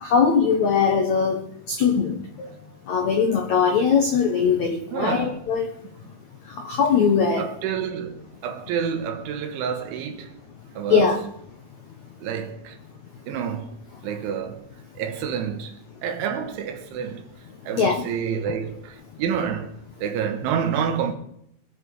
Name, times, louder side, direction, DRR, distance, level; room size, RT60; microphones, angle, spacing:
voice 1, 0.0-1.4 1.7-2.5 2.9-5.7 6.6-7.5 10.9-11.2 17.8-18.0, left 6 dB, 90° left, 1.6 m, -20 dB
voice 2, 4.9-5.4 7.4-10.4 10.8-11.1 12.2-12.8 13.3-13.8 14.0-14.7 15.0-17.2 17.7-19.8 20.0-21.1, right 7 dB, 80° right, 3.7 m, -28 dB
23.0 x 7.8 x 4.8 m
omnidirectional pair, 5.5 m